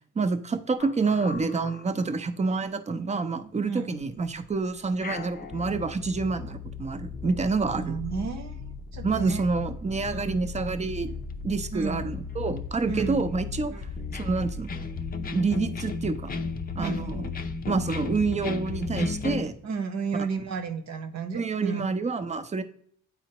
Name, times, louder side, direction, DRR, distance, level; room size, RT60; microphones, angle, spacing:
voice 1, 0.2-7.9 9.0-11.1 11.4-13.8 14.1-14.7 15.3-16.3 16.8-17.3 17.7-19.5 21.3-22.6, right 4 dB, 25° right, 11 dB, 0.6 m, -28 dB
sound 1, 0.8-2.6 3.0-3.1 3.5-3.6 4.4-19.4, left 4 dB, 30° left, 0.6 m, -35 dB
voice 2, 7.7-8.6 8.9-9.4 10.1-10.2 11.7-12.0 12.9-13.2 13.7-14.0 16.7-17.1 19.6-21.8, right 5 dB, 65° right, 7 dB, 1.0 m, -32 dB
9.1 x 4.1 x 2.9 m, 0.62 s
cardioid pair, 90°, 30 cm